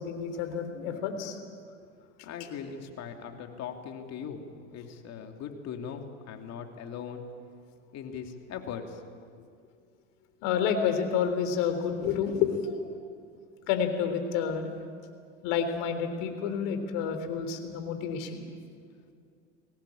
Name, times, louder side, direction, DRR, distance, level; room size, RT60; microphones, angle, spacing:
voice 1, 0.0-1.4 2.2-2.3 10.4-12.8 13.7-14.7 15.4-18.5, left 7 dB, 60° left, 7 dB, 3.7 m, -29 dB
voice 2, 2.2-7.2 7.9-9.0, left 7 dB, 45° left, 4 dB, 2.9 m, -40 dB
23.0 x 18.0 x 8.8 m, 2.2 s
hypercardioid pair, 90°, 36 cm